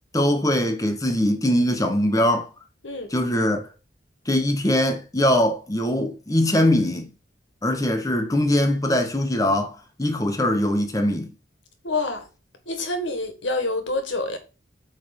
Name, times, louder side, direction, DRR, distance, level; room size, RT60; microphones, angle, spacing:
voice 1, 0.1-2.5 3.1-3.6 4.3-7.1 7.6-11.3, left 1 dB, 20° left, 1.0 m, -22 dB
voice 2, 11.8-12.2 12.7-14.4, left 2 dB, 75° left, 1.6 m, -27 dB
7.9 x 3.5 x 5.2 m
head